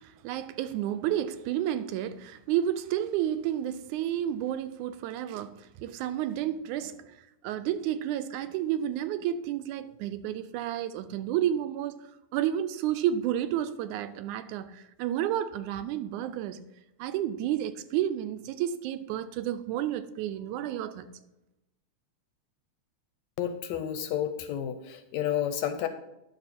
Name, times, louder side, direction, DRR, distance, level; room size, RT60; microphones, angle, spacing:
voice 1, 0.0-7.0 7.4-12.0 12.3-16.6 17.0-21.1, right 11 dB, 85° right, 2.0 m, -31 dB
voice 2, 23.4-25.9, left 10 dB, 80° left, 1.7 m, -31 dB
10.5 x 6.4 x 4.2 m
omnidirectional pair, 3.5 m